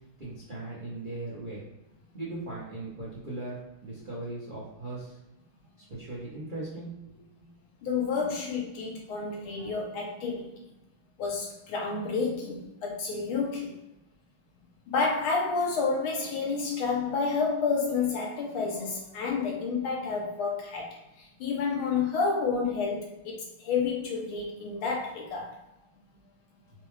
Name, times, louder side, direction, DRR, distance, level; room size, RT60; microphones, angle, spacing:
voice 1, 0.2-1.6 2.1-5.2 5.9-6.9, right 2 dB, 55° right, -7 dB, 0.5 m, -38 dB
voice 2, 7.8-10.6 11.2-13.7 14.9-20.9 21.4-25.6, left 4 dB, 75° left, -1 dB, 1.6 m, -30 dB
4.2 x 2.3 x 3.0 m, 0.91 s
omnidirectional pair, 2.3 m